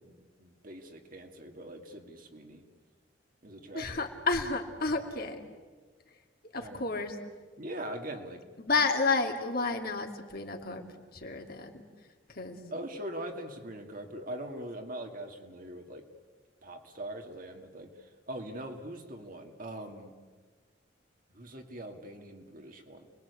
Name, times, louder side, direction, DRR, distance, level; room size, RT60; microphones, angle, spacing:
voice 1, 0.0-2.6 3.4-4.1 4.9-5.1 6.5-7.1 7.6-8.4 12.7-16.0 16.6-20.1 21.3-23.1, right 1 dB, 50° right, 4 dB, 2.6 m, -42 dB
voice 2, 3.7-5.4 6.5-7.2 8.6-11.7 12.3-12.6, left 3 dB, 55° left, 3 dB, 2.6 m, -31 dB
29.5 x 21.0 x 8.5 m, 1.4 s
head